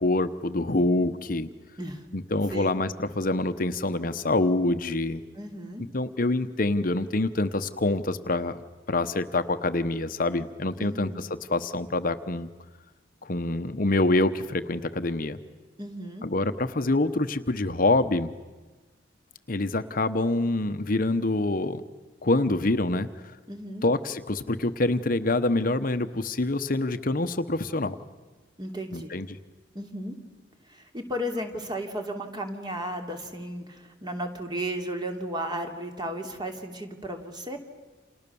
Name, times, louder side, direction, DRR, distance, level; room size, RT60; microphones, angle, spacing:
voice 1, 0.0-1.5 2.1-5.2 5.9-8.6 8.9-12.5 13.2-15.4 16.2-18.3 19.5-21.8 22.2-23.4 23.8-28.0 28.9-29.4, left 2 dB, 50° left, 10 dB, 1.0 m, -26 dB
voice 2, 5.3-5.8 10.8-11.2 15.8-16.3 23.5-23.8 28.6-29.1 29.7-30.2 30.7-37.6, equal, 25° right, 4 dB, 3.0 m, -34 dB
30.0 x 28.0 x 7.0 m, 1.3 s
head